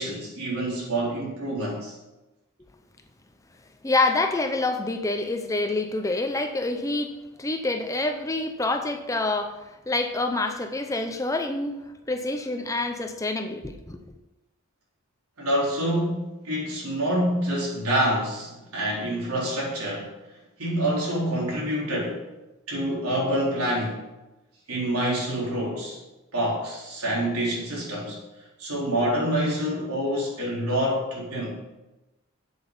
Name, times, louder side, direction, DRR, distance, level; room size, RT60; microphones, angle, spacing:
voice 1, 0.0-2.0 15.4-20.1 20.6-22.2 22.7-24.0 24.7-26.0 26.3-28.2 28.6-31.6, right 1 dB, 85° right, -4 dB, 4.1 m, -27 dB
voice 2, 3.8-11.8 12.1-14.0, left 2 dB, 15° left, 7 dB, 0.6 m, -27 dB
8.0 x 7.9 x 5.4 m, 1.0 s
head